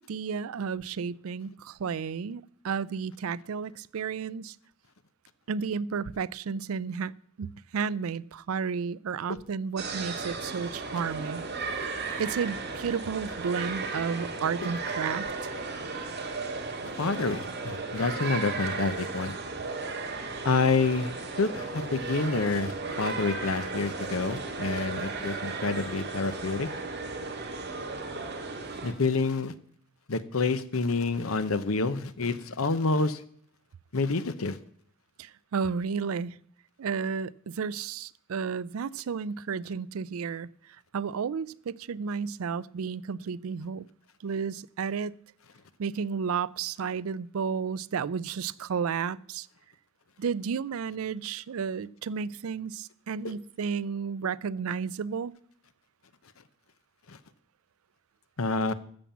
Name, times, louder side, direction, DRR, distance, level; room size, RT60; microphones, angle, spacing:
voice 1, 0.1-4.6 5.5-7.1 7.4-11.4 12.2-15.5 35.2-36.4 36.8-43.8 44.2-45.2 45.8-49.5 50.2-55.3, right 6 dB, 85° right, 21 dB, 0.4 m, -32 dB
sound 1, 9.8-28.9, right 3 dB, 50° right, 2.0 m, -35 dB
voice 2, 16.8-19.3 20.4-21.1 21.4-26.7 28.8-29.5 30.1-33.2 33.9-34.6 57.1-57.2 58.4-58.7, left 3 dB, 85° left, 13 dB, 0.9 m, -28 dB
13.0 x 7.2 x 7.1 m, 0.63 s
head